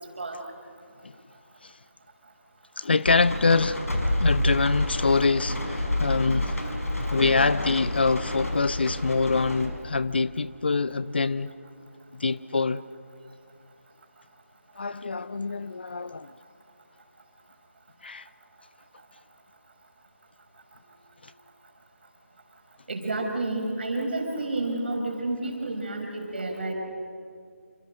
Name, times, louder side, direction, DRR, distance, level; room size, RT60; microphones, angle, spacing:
voice 1, 2.8-3.8 4.2-6.5 7.1-11.5 12.2-12.8 14.8-16.3 18.0-18.2, left 4 dB, 45° left, 0.5 m, -25 dB
sound 1, 3.1-9.7, left 1 dB, 75° left, 5.3 m, -29 dB
voice 2, 22.9-26.7, right 2 dB, 45° right, 5.1 m, -30 dB
28.0 x 25.5 x 6.5 m
figure-of-eight pair, 160°, 8 cm